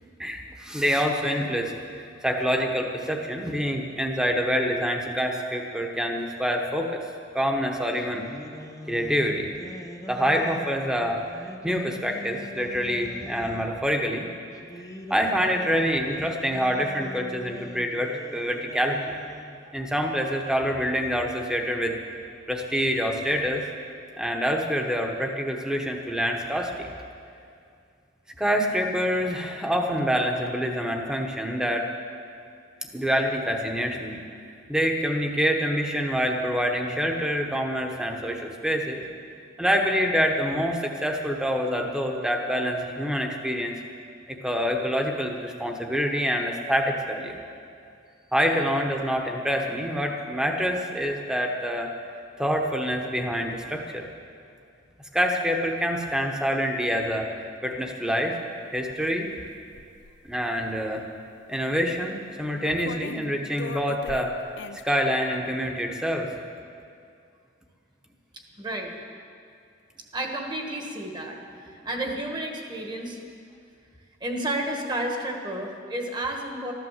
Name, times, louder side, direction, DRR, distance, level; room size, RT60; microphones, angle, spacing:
voice 1, 0.0-7.0 7.3-8.2 8.9-9.5 10.1-11.3 11.6-14.3 15.1-19.1 19.7-22.0 22.5-23.7 24.2-26.9 28.4-31.9 32.9-34.2 34.7-39.0 39.6-43.8 44.3-47.4 48.3-51.9 52.4-54.1 55.1-57.3 57.6-58.4 58.7-59.3 60.2-61.0 61.5-64.3 64.8-66.3, equal, 5° right, 2 dB, 1.1 m, -26 dB
sound 1, 7.9-13.7 14.5-19.6, left 1 dB, 20° left, 0.7 m, -43 dB
sound 2, 58.8-58.9 59.3-60.3 61.5-61.6 62.6-63.3 63.6-64.8, left 5 dB, 60° left, 0.4 m, -38 dB
voice 2, 68.3-69.0 70.0-73.2 74.2-76.7, right 1 dB, 25° right, 2 dB, 1.4 m, -31 dB
14.0 x 11.5 x 7.3 m, 2.4 s
head